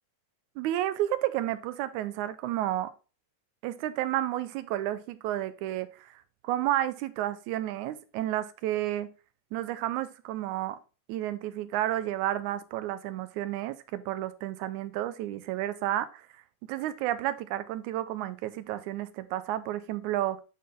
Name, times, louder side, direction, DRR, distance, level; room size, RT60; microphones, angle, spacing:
voice 1, 0.6-2.9 3.6-9.1 9.5-10.8 11.1-16.4 16.7-20.4, right 13 dB, 85° right, 2.0 m, -31 dB
8.4 x 4.1 x 3.6 m
omnidirectional pair, 3.4 m